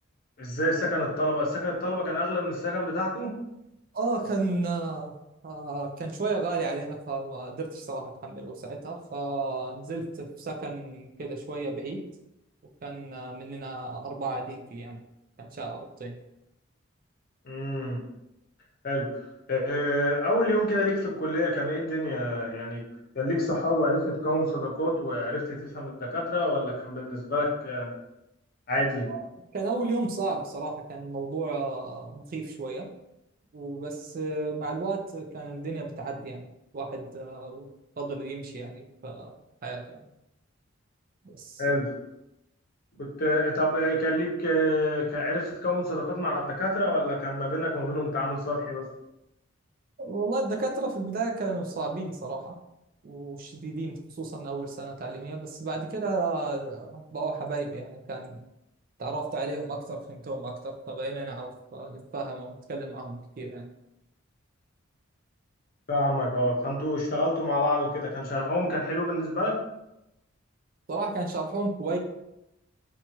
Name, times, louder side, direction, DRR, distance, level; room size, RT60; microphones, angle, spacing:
voice 1, 0.4-3.4 17.4-18.0 18.8-19.1 19.5-22.8 23.1-27.9 28.7-29.1 41.6-41.9 42.9-48.9 65.9-69.6, left 1 dB, 45° left, -3 dB, 0.7 m, -27 dB
voice 2, 3.9-5.1 5.4-12.0 12.8-15.0 15.4-16.2 29.1-29.2 29.5-32.9 33.5-36.5 36.7-37.7 38.0-39.4 39.6-40.0 41.2-41.6 50.0-52.5 53.0-58.4 59.0-63.7 70.9-72.0, right 3 dB, 45° right, 2 dB, 0.4 m, -33 dB
2.8 x 2.3 x 2.9 m, 0.89 s
head